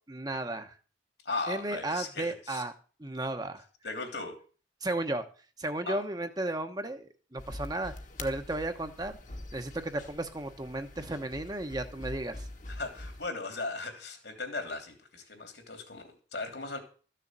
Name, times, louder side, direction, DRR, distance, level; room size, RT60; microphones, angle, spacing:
voice 1, 0.1-0.7 1.5-2.7 3.0-3.6 4.8-5.2 5.6-7.9 8.2-9.2 9.5-12.5, right 2 dB, 20° right, 7 dB, 1.0 m, -34 dB
voice 2, 1.2-2.6 3.8-4.4 5.9-6.0 12.7-16.8, left 3 dB, 70° left, 5 dB, 3.2 m, -37 dB
sound 1, 7.4-13.3, left 1 dB, 45° left, 1.4 m, -44 dB
14.0 x 6.8 x 7.5 m, 0.39 s
head